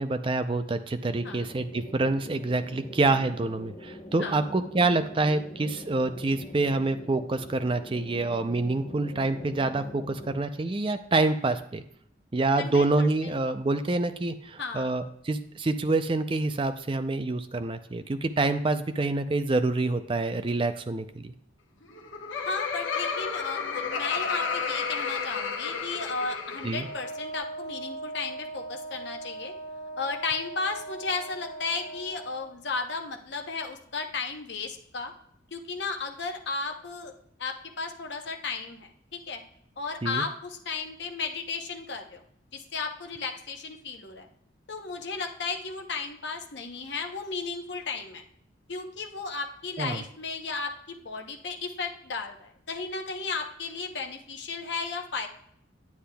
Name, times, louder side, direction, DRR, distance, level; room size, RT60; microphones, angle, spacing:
voice 1, 0.0-11.8 12.3-21.3 26.6-26.9 40.0-40.2 49.8-50.0, right 2 dB, 25° right, 9 dB, 0.4 m, -27 dB
sound 1, 1.1-10.4, equal, 35° left, 0.9 m, -44 dB
voice 2, 12.6-13.4 14.6-14.9 22.4-29.5 30.0-35.1 35.5-37.1 37.4-39.4 39.8-42.2 42.5-44.3 44.7-48.2 48.7-55.3, left 4 dB, 65° left, 3 dB, 0.8 m, -34 dB
Laughter, 21.8-27.0, left 5 dB, 80° left, 1.2 m, -32 dB
Wind instrument woodwind instrument, 26.8-32.5, right 2 dB, 65° right, 3.2 m, -40 dB
9.5 x 8.5 x 2.3 m, 0.69 s
head